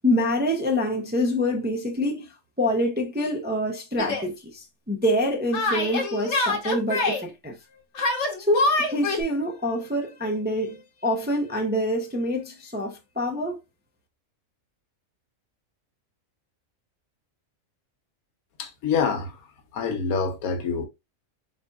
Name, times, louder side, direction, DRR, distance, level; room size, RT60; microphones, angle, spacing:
voice 1, 0.0-7.5 8.4-13.6, left 1 dB, 15° right, 0.4 m, -26 dB
Yell, 4.0-4.3 5.5-7.2 7.9-9.2, left 2 dB, 55° left, 1.2 m, -25 dB
voice 2, 18.6-19.5 19.7-20.9, left 5 dB, 85° left, 1.3 m, -26 dB
4.2 x 4.1 x 2.3 m
omnidirectional pair, 1.5 m